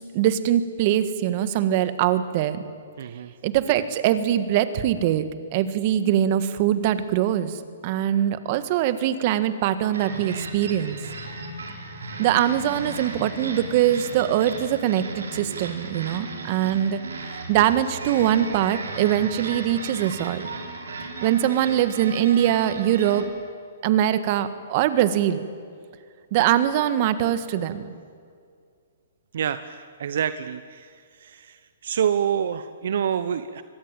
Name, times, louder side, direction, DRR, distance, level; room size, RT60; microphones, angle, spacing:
voice 1, 0.0-2.6 3.4-7.5 7.8-11.0 12.2-17.0 17.5-20.4 21.2-23.3 23.8-25.4 26.3-27.9, right 11 dB, 40° right, 12 dB, 1.6 m, -22 dB
voice 2, 3.0-3.3 29.3-33.6, right 8 dB, 65° right, 13 dB, 0.9 m, -27 dB
sound 1, 9.9-23.2, right 3 dB, 90° right, 4.1 m, -36 dB
24.5 x 18.5 x 9.0 m, 2.2 s
hypercardioid pair, 145°, 0 cm